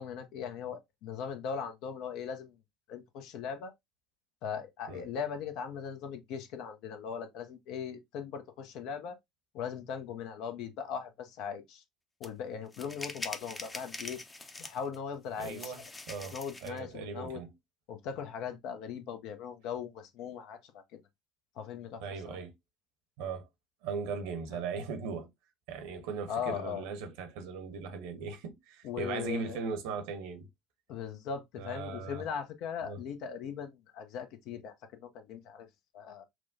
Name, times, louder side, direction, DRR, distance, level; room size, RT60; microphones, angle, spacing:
voice 1, 0.0-2.5 2.9-3.7 4.4-9.2 9.5-11.8 12.2-14.2 14.6-15.7 16.3-17.4 17.9-21.0 21.6-22.4 24.5-24.6 26.3-26.8 28.8-29.6 30.9-34.7 35.0-35.7 35.9-36.2, left 7 dB, 55° left, 0.7 m, -39 dB
sound 1, 12.2-12.3 12.7-15.0 15.4-16.8, left 2 dB, 20° left, 0.7 m, -43 dB
voice 2, 15.4-16.4 16.6-17.5 22.0-22.5 23.2-23.4 23.8-25.3 25.7-30.5 31.6-32.3 32.8-33.0, right 5 dB, 60° right, 0.9 m, -38 dB
6.0 x 2.2 x 2.7 m
figure-of-eight pair, 60°, 0 cm